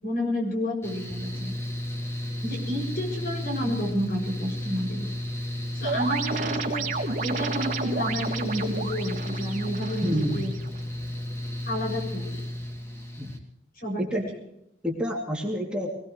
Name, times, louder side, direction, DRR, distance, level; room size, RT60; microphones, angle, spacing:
voice 1, 0.0-1.5 2.4-5.1 5.7-6.9 7.2-10.5 11.7-12.5 13.8-14.4, equal, 55° left, 1 dB, 6.8 m, -30 dB
Mechanical fan, 0.8-13.4, left 1 dB, 15° left, 2.9 m, -33 dB
sound 1, 5.8-10.8, right 3 dB, 45° right, 3.1 m, -32 dB
voice 2, 10.0-10.5 13.2-13.3 14.0-14.2 14.8-15.9, equal, 5° right, -2 dB, 2.9 m, -28 dB
21.5 x 20.5 x 3.3 m, 0.84 s
head